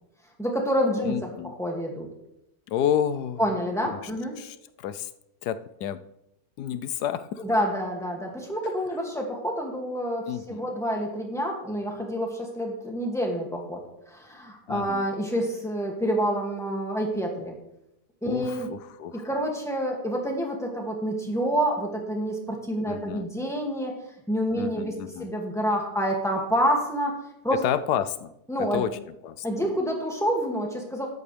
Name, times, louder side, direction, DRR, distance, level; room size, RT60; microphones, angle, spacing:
voice 1, 0.4-1.3 1.6-2.1 3.4-4.3 7.4-13.8 14.1-17.5 18.2-18.7 19.1-23.9 24.3-24.9 25.2-27.2 27.4-27.6 28.5-28.8 29.4-31.1, equal, ahead, 0 dB, 2.1 m, -28 dB
voice 2, 1.0-1.5 2.7-3.4 3.9-4.1 4.4-5.1 5.4-6.0 6.6-7.4 10.3-10.7 14.7-15.0 18.2-19.3 22.9-23.3 24.5-25.3 27.6-28.3 28.6-29.0 29.2-29.5, left 10 dB, 70° left, 13 dB, 1.1 m, -30 dB
13.5 x 11.0 x 3.4 m, 0.85 s
omnidirectional pair, 1.9 m